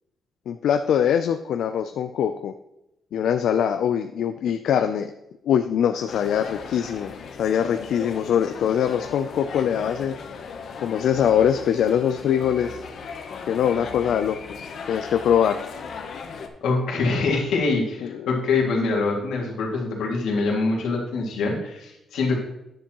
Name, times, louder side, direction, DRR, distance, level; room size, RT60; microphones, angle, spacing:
voice 1, 0.5-2.5 3.1-5.1 5.4-7.1 7.4-10.1 10.8-12.8 13.5-15.6 18.0-18.3, left 9 dB, 70° left, 8 dB, 0.4 m, -23 dB
sound 1, 6.1-16.5, left 5 dB, 50° left, 0.9 m, -37 dB
voice 2, 16.6-22.4, left 3 dB, 90° left, -2 dB, 2.2 m, -24 dB
10.0 x 6.9 x 3.0 m, 0.87 s
cardioid pair, 160°, 0 cm